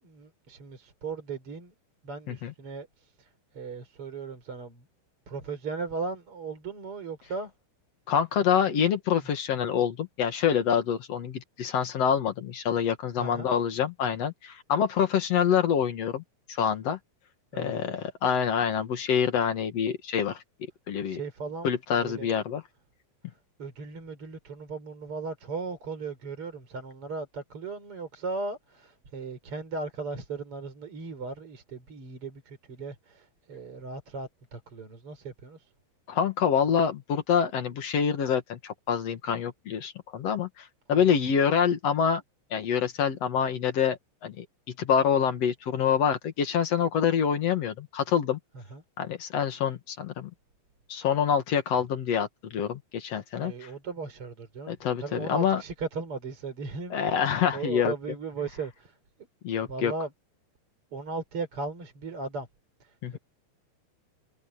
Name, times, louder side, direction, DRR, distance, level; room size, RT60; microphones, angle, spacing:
voice 1, 0.0-1.7 2.0-4.9 5.3-7.5 8.7-8.8 9.2-9.3 13.2-13.5 17.5-18.1 21.0-22.3 23.3-35.7 40.9-41.1 48.5-48.8 53.4-59.0 59.6-60.1 60.9-62.5 62.8-63.2, right 4 dB, 30° right, 4.6 m, -37 dB
voice 2, 8.1-16.2 16.5-17.0 17.5-20.4 20.9-21.2 21.6-22.6 36.1-42.2 42.5-44.5 44.8-48.4 49.0-50.3 50.9-53.5 54.7-55.6 56.9-57.9 59.4-59.9 63.0-63.2, left 8 dB, 60° left, 1.7 m, -26 dB
omnidirectional pair, 5.4 m